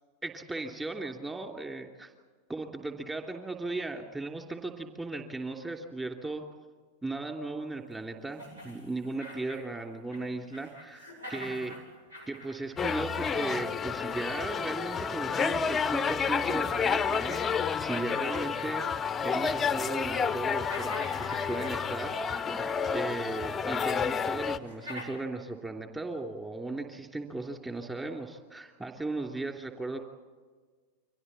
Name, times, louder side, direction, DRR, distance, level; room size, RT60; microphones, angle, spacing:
voice 1, 0.2-2.1 2.5-6.4 7.0-11.8 12.3-18.8 19.2-22.5 22.9-30.0, right 2 dB, 15° right, 3 dB, 3.0 m, -37 dB
sound 1, 8.3-10.3 10.5-13.6 15.7-15.8 16.4-16.5 16.9-19.0 19.4-19.8 20.2-22.4 23.4-23.5 24.0-24.1 24.6-25.1, left 1 dB, 75° right, 7.9 m, -46 dB
sound 2, 12.8-24.6, left 6 dB, 20° left, 0.7 m, -30 dB
30.0 x 24.0 x 4.3 m, 1.5 s
figure-of-eight pair, 90°, 0 cm